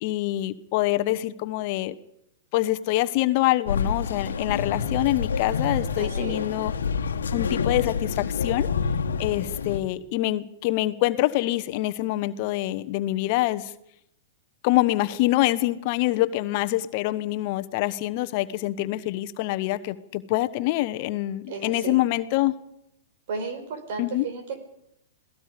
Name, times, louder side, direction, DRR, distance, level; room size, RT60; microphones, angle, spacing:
voice 1, 0.0-1.9 2.5-6.7 7.3-8.7 9.2-13.7 14.6-22.6 24.0-24.3, left 16 dB, 50° left, 11 dB, 1.1 m, -25 dB
sound 1, 3.7-9.8, left 5 dB, 80° left, 1.5 m, -28 dB
voice 2, 6.0-6.5 21.5-22.0 23.3-24.6, right 4 dB, 60° right, 8 dB, 4.6 m, -34 dB
27.5 x 18.0 x 5.3 m, 0.78 s
hypercardioid pair, 115°, 0 cm